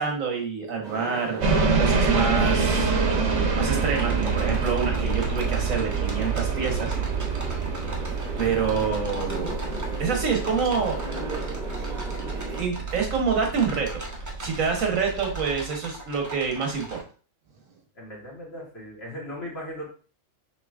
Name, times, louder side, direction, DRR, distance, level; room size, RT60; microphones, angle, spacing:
voice 1, 0.0-1.4 1.8-3.0 3.5-6.9 7.3-7.4 8.4-9.6 10.0-11.0 12.6-13.9 14.4-17.0, right 5 dB, 85° right, 2 dB, 1.6 m, -27 dB
sound 1, 0.8-12.7, right 2 dB, 35° right, 1.0 m, -37 dB
sound 2, 1.4-15.5, right 4 dB, 65° right, 1.2 m, -27 dB
sound 3, 3.9-17.0, right 1 dB, 20° right, 0.6 m, -40 dB
voice 2, 18.0-19.9, equal, 50° left, -4 dB, 1.8 m, -37 dB
6.0 x 3.0 x 2.4 m, 0.38 s
omnidirectional pair, 1.4 m